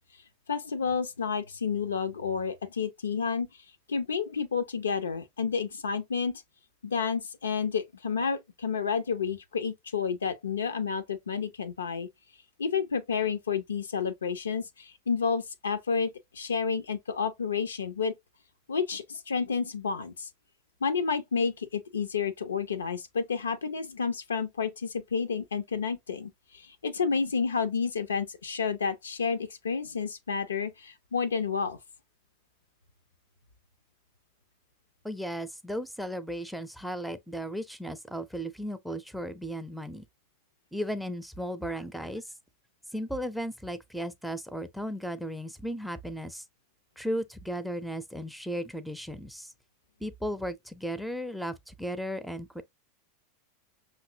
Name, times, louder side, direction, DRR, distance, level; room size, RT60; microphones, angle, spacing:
voice 1, 0.5-3.5 3.9-6.4 6.8-12.1 12.6-18.2 18.7-20.3 20.8-31.8, left 5 dB, 70° left, 0.4 m, -30 dB
voice 2, 35.0-40.1 40.7-42.2 42.9-46.4 47.0-49.5 50.0-52.6, equal, ahead, 0.5 m, -35 dB
5.7 x 2.7 x 2.7 m
figure-of-eight pair, 85°, 0 cm